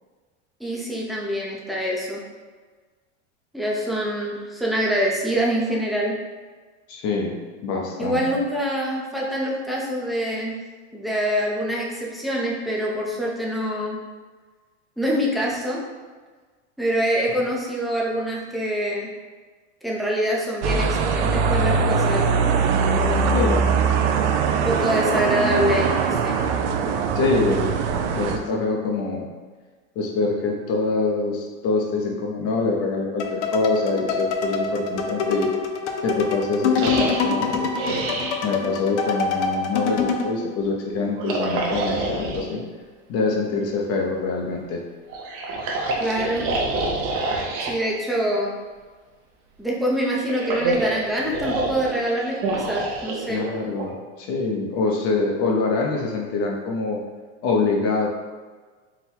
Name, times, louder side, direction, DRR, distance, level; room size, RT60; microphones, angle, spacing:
voice 1, 0.6-2.2 3.5-6.2 8.0-10.6 10.9-14.0 15.0-15.8 16.8-19.1 19.8-22.3 23.0-23.4 24.5-26.4 46.0-46.5 47.6-48.5 49.6-53.4, equal, ahead, -4 dB, 0.6 m, -25 dB
voice 2, 6.9-8.3 23.2-23.7 27.1-27.8 28.1-29.3 30.0-35.5 36.0-37.7 38.4-42.6 43.1-44.8 53.2-57.0 57.4-58.1, left 3 dB, 45° left, -1 dB, 0.9 m, -25 dB
sound 1, 20.6-28.4, right 5 dB, 75° right, 0.5 m, -21 dB
sound 2, 33.2-40.3, left 5 dB, 80° left, 0.6 m, -25 dB
sound 3, 36.8-38.4 41.1-42.5 45.1-47.8 50.0-53.9, right 2 dB, 40° right, 0.8 m, -27 dB
4.0 x 2.2 x 4.3 m, 1.4 s
supercardioid pair, 125°, 35 cm